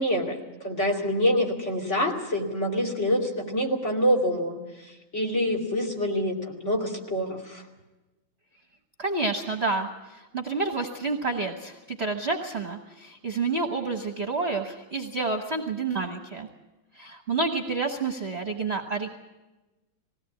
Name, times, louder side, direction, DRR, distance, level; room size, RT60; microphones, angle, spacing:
voice 1, 0.0-7.6, equal, 35° left, 2 dB, 2.9 m, -26 dB
voice 2, 9.0-16.5 16.9-19.1, right 3 dB, 35° right, 4 dB, 1.3 m, -29 dB
20.0 x 17.0 x 8.5 m, 1.1 s
omnidirectional pair, 2.3 m